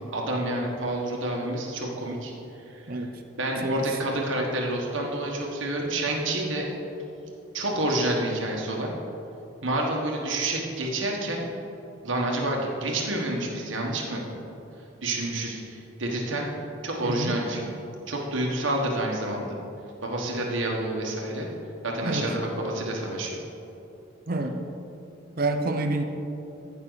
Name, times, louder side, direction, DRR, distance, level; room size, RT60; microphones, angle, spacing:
voice 1, 0.1-3.1 3.4-6.7 7.5-8.9 9.6-11.5 12.0-14.2 15.0-16.5 16.8-17.7 18.1-19.6 20.0-21.5 21.8-23.4, right 1 dB, 80° right, -1 dB, 1.4 m, -28 dB
voice 2, 17.0-17.4 22.0-22.3 24.3-24.6 25.4-26.0, right 2 dB, 50° right, 6 dB, 0.7 m, -27 dB
14.0 x 5.8 x 4.0 m, 2.9 s
head